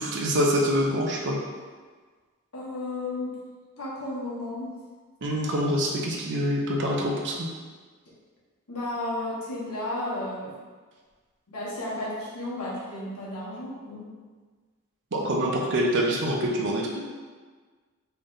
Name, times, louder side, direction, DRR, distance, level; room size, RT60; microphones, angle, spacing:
voice 1, 0.0-1.4 5.2-7.5 15.1-16.9, equal, 55° right, -1 dB, 0.6 m, -25 dB
voice 2, 2.5-3.4 3.8-4.7 8.7-10.5 11.5-14.1, left 1 dB, 70° left, -7 dB, 1.2 m, -33 dB
3.4 x 2.6 x 3.6 m, 1.5 s
head